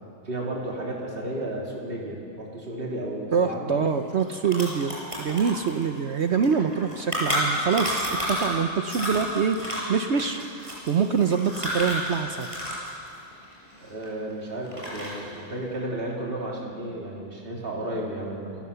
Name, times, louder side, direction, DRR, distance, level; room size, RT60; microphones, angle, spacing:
voice 1, 0.2-3.8 13.8-18.7, right 1 dB, 40° right, -3 dB, 3.2 m, -33 dB
voice 2, 3.3-12.5, right 6 dB, 55° right, 7 dB, 1.0 m, -25 dB
sound 1, 3.9-4.0 4.2-8.6 8.9-12.9 13.1-14.3 14.7-15.3, equal, 20° right, 5.9 m, -30 dB
28.0 x 16.0 x 7.0 m, 2.6 s
omnidirectional pair, 1.5 m